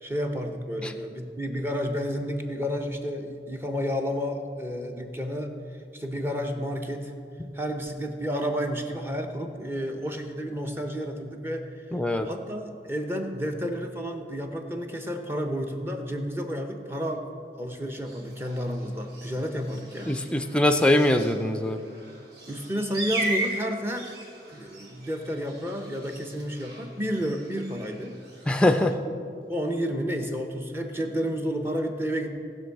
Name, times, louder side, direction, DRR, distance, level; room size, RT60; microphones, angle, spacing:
voice 1, 0.0-5.5 5.9-7.1 7.5-11.7 12.2-17.2 17.5-20.2 22.5-24.1 24.5-28.2 29.1-29.2 29.5-32.4, equal, 15° right, 3 dB, 0.8 m, -31 dB
voice 2, 11.9-12.3 20.1-21.8 28.5-29.0, left 1 dB, 5° left, 7 dB, 0.5 m, -22 dB
sound 1, 18.0-28.9, right 2 dB, 55° right, 2.3 m, -38 dB
18.5 x 6.3 x 4.7 m, 2.4 s
head